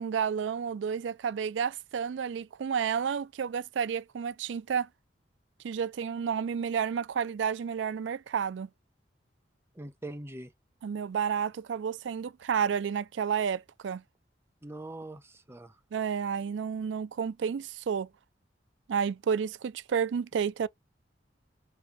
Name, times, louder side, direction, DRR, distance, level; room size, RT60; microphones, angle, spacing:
voice 1, 0.0-4.9 5.6-8.7 10.8-14.0 15.9-18.1 18.9-20.7, right 7 dB, 80° right, 0.4 m, -31 dB
voice 2, 9.7-10.5 14.6-15.8, right 1 dB, 15° right, 0.7 m, -42 dB
5.1 x 2.8 x 3.4 m
head